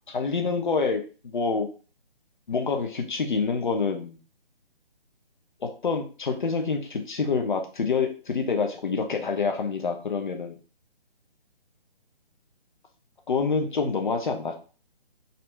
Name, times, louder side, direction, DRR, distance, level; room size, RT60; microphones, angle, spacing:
voice 1, 0.1-1.7 2.5-4.2 5.6-10.6 13.3-14.5, left 5 dB, 55° left, 4 dB, 0.9 m, -27 dB
4.2 x 2.7 x 3.4 m, 0.37 s
figure-of-eight pair, 145°, 30 cm